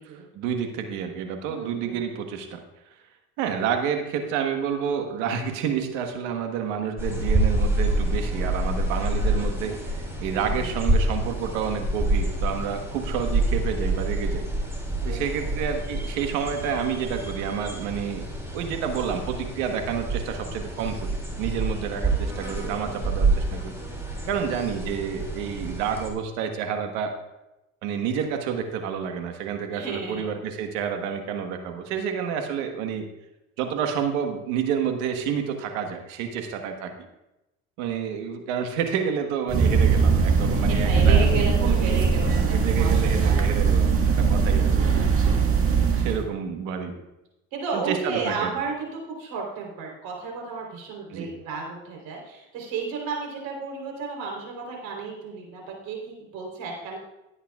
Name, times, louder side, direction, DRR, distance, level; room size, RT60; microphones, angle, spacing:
voice 1, 0.3-2.6 3.4-14.4 15.0-18.3 18.5-23.7 24.3-27.1 27.8-33.1 33.6-36.9 37.8-42.2 42.5-45.1 46.0-47.0 47.7-48.5 51.1-51.3, right 7 dB, 90° right, 5 dB, 1.4 m, -29 dB
voice 2, 1.4-2.0 10.2-10.7 15.0-15.4 22.6-23.1 29.7-30.2 40.7-43.8 45.2-45.7 47.5-57.0, right 4 dB, 70° right, 0 dB, 3.8 m, -33 dB
sound 1, 7.0-26.1, right 2 dB, 5° right, 3.2 m, -27 dB
sound 2, 39.5-46.2, right 5 dB, 40° right, 1.8 m, -20 dB
17.5 x 8.7 x 2.4 m, 0.94 s
supercardioid pair, 95°, 36 cm